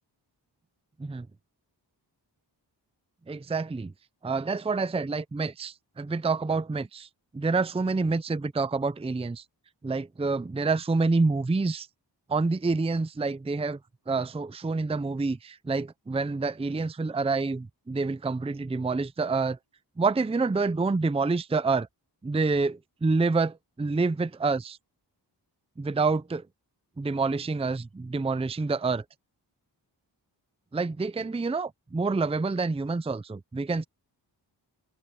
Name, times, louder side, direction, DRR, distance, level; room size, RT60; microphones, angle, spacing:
voice 1, 3.3-3.9 4.2-7.1 7.3-9.4 9.8-11.9 12.3-13.8 14.1-19.6 20.0-21.9 22.2-24.8 25.8-26.4 27.0-29.0 30.7-33.8, right 3 dB, 15° right, 0.5 m, -27 dB
open air
wide cardioid pair, 95°, 43 cm